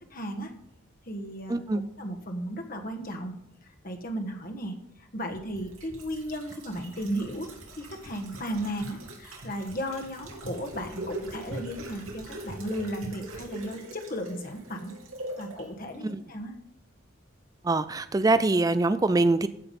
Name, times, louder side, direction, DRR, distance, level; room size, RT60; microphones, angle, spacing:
voice 1, 0.1-0.5 1.1-3.4 3.8-4.7 5.1-7.5 7.8-14.9 15.4-16.5, equal, 45° left, 4 dB, 1.4 m, -35 dB
voice 2, 1.5-1.8 16.0-16.2 17.6-19.5, right 2 dB, 15° right, 13 dB, 0.3 m, -24 dB
sound 1, 5.3-15.6 15.9-16.0, right 1 dB, 85° right, 3.1 m, -42 dB
14.5 x 5.9 x 5.4 m, 0.82 s
head